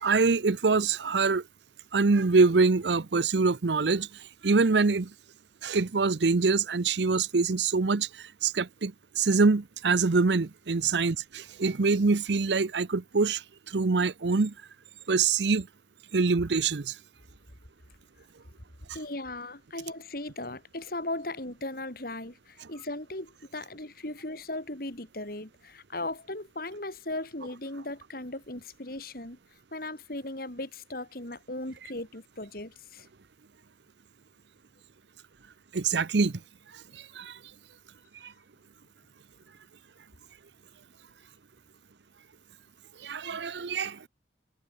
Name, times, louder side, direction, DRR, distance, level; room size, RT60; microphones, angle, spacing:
voice 1, 0.0-1.4 1.9-4.1 4.4-5.1 5.6-8.1 8.4-8.9 9.2-13.4 13.7-14.5 15.1-15.7 16.1-16.9 35.7-36.3 37.2-37.3 43.0-44.0, right 4 dB, 75° right, 0.7 m, -24 dB
voice 2, 18.9-29.4 29.7-33.1, left 2 dB, 55° left, 4.1 m, -37 dB
head